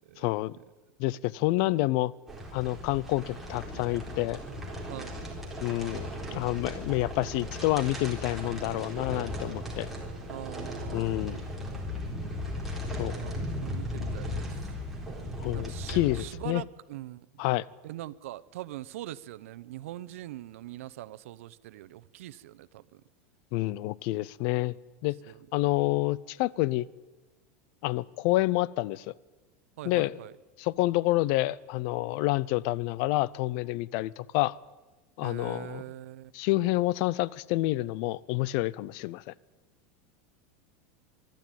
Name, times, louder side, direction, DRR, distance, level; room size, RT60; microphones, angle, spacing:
voice 1, 0.2-0.6 1.0-2.1 2.5-4.4 5.6-9.9 10.9-11.4 13.0-13.2 15.4-16.6 17.4-17.6 23.5-24.8 25.0-25.2 25.5-26.9 27.8-29.1 29.8-30.2 30.6-34.6 35.2-35.8 36.3-39.3, left 18 dB, 55° left, 23 dB, 0.6 m, -28 dB
sound 1, 2.3-16.2, left 1 dB, 5° right, 3.9 m, -37 dB
voice 2, 10.3-11.3 13.1-14.5 15.5-17.4 17.8-23.0 25.3-25.4 29.8-30.3 35.2-36.3, right 14 dB, 85° right, 16 dB, 0.8 m, -42 dB
23.5 x 12.0 x 9.2 m, 1.2 s
supercardioid pair, 150°, 7 cm